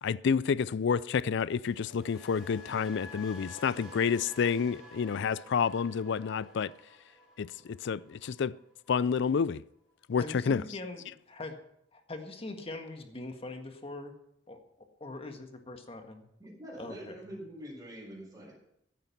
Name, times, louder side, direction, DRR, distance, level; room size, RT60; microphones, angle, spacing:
voice 1, 0.0-6.7 7.4-8.5 8.9-9.6 10.1-10.6, left 6 dB, 65° left, 0.4 m, -29 dB
sound 1, 1.5-9.6 9.9-10.2, left 2 dB, ahead, 4.4 m, -51 dB
voice 2, 10.2-11.6 11.9-14.1 14.5-14.6 15.0-16.3 16.8-17.2, left 2 dB, 30° left, 1.7 m, -42 dB
voice 3, 16.4-18.5, equal, 20° right, 5.0 m, -45 dB
15.0 x 9.3 x 5.9 m
head